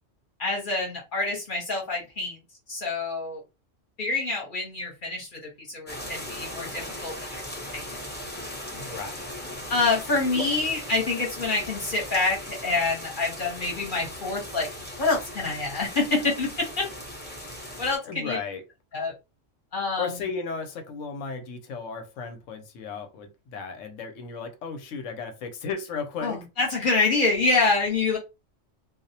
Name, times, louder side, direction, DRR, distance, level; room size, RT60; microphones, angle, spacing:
voice 1, 0.4-2.4 2.7-3.4 4.0-7.4 7.7-8.0 9.7-14.7 15.0-16.9 17.8-18.4 18.9-19.1 19.7-20.1 26.2-28.2, left 3 dB, 45° left, 0.8 m, -26 dB
sound 1, 5.9-18.0, left 1 dB, 15° left, 0.4 m, -38 dB
voice 2, 8.8-9.3 10.3-10.4 18.0-18.6 20.0-26.4, left 5 dB, 85° left, 1.0 m, -35 dB
2.3 x 2.0 x 2.7 m
omnidirectional pair, 1.3 m